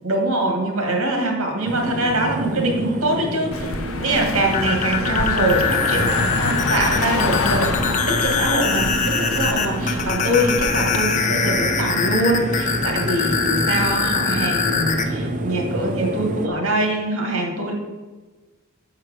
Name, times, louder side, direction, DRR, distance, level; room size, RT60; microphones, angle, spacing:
voice 1, 0.0-3.7 4.0-17.7, right 1 dB, 85° right, 2 dB, 1.7 m, -23 dB
sound 1, 1.6-16.5, right 1 dB, 40° right, 0.6 m, -28 dB
Car passing by, 3.5-11.0, left 3 dB, 70° left, 0.6 m, -27 dB
sound 2, 4.4-15.1, left 5 dB, 35° left, 0.7 m, -23 dB
6.7 x 4.8 x 6.2 m, 1.3 s
head